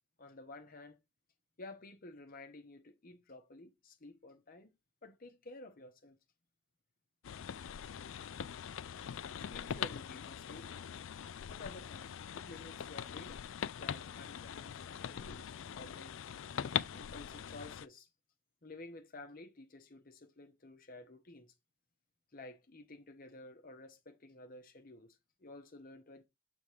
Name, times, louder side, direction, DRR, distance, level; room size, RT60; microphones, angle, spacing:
voice 1, 0.2-1.0 1.6-4.7 5.0-6.2 9.3-10.8 11.5-16.2 16.9-18.1 18.6-21.5 22.3-26.3, left 2 dB, 45° left, 0.9 m, -52 dB
sound 1, 7.2-17.9, left 8 dB, 75° left, 0.4 m, -42 dB
7.1 x 3.5 x 4.9 m
head